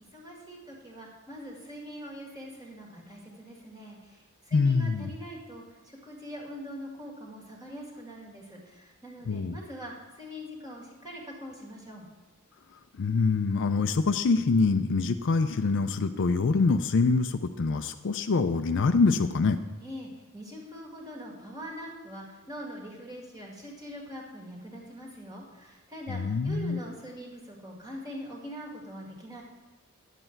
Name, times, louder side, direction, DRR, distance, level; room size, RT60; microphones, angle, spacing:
voice 1, 0.1-4.0 4.5-12.0 19.8-29.4, equal, 20° right, -2 dB, 2.0 m, -43 dB
voice 2, 4.5-5.1 9.3-9.6 13.0-19.6 26.1-26.8, left 4 dB, 55° left, 9 dB, 0.4 m, -25 dB
9.9 x 7.8 x 4.5 m, 1.2 s
head